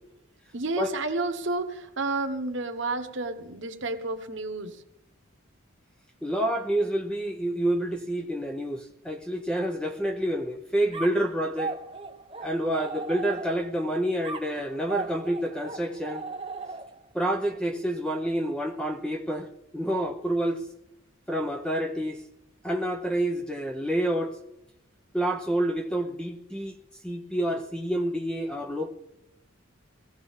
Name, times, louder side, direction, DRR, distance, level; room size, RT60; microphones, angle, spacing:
voice 1, 0.5-4.8, right 3 dB, 65° right, 1.2 m, -31 dB
voice 2, 6.2-11.8 12.4-16.2 17.1-20.6 21.3-22.2 22.6-24.4 25.1-26.8 27.0-28.9, right 1 dB, 5° left, 0.7 m, -28 dB
sound 1, 10.9-13.8 14.2-17.1, right 4 dB, 25° right, 0.9 m, -37 dB
19.0 x 15.5 x 3.7 m
head